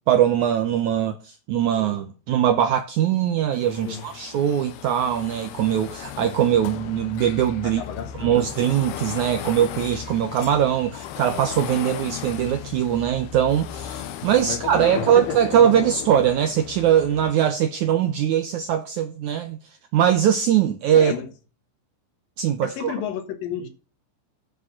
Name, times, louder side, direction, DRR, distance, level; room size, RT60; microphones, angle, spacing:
voice 1, 0.1-7.8 8.2-19.6 19.9-21.1 22.4-22.9, right 10 dB, 75° right, 1.8 m, -21 dB
sound 1, 3.5-17.3, left 10 dB, 85° left, 2.9 m, -36 dB
voice 2, 7.6-8.4 14.2-15.4 20.9-21.3 22.6-23.7, left 8 dB, 70° left, 3.0 m, -32 dB
9.6 x 6.3 x 5.7 m
omnidirectional pair, 4.4 m